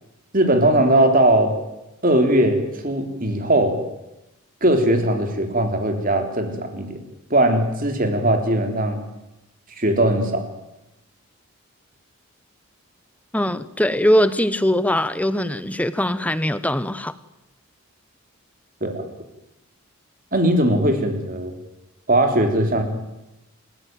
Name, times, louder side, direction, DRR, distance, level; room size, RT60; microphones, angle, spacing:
voice 1, 0.3-1.6 2.0-3.8 4.6-7.0 7.3-9.0 9.8-10.4 18.8-19.0 20.3-21.5 22.1-22.8, right 1 dB, 40° right, 5 dB, 3.6 m, -19 dB
voice 2, 13.3-17.1, equal, 5° left, 15 dB, 0.9 m, -21 dB
29.0 x 15.0 x 9.3 m, 0.95 s
head